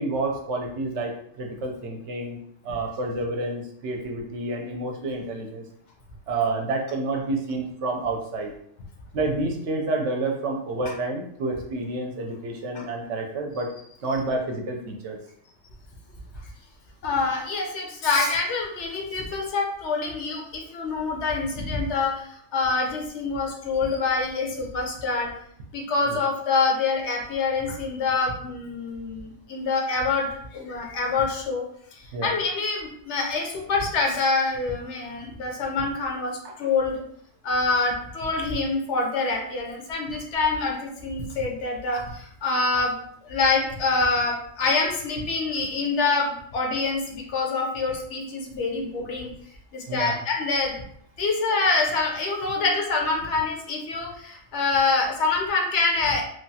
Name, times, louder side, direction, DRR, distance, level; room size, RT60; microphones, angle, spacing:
voice 1, 0.0-2.4 2.6-5.6 6.3-8.5 9.1-13.7 14.0-15.2 26.1-26.2 32.1-32.3 36.4-36.5 49.9-50.2, right 2 dB, 70° right, 1 dB, 0.9 m, -29 dB
voice 2, 17.0-25.3 25.7-31.6 31.9-37.0 37.4-43.0 43.3-49.3 49.7-50.8 51.2-56.2, left 3 dB, 70° left, 1 dB, 0.9 m, -26 dB
3.0 x 2.3 x 2.7 m, 0.69 s
omnidirectional pair, 1.3 m